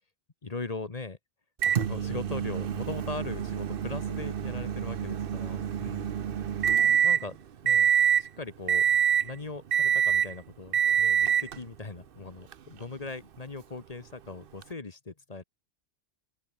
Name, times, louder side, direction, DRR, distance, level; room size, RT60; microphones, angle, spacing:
voice 1, 0.4-1.2 1.7-6.2 7.0-7.4 7.6-7.9 8.2-8.8 9.2-15.4, left 3 dB, 35° left, 1.3 m, -40 dB
Microwave oven, 1.6-7.3 7.7-8.3 8.7-9.3 9.7-10.3 10.7-11.6 12.5-12.6 14.6-14.7, right 8 dB, 60° right, 0.9 m, -26 dB
open air
omnidirectional pair, 1.1 m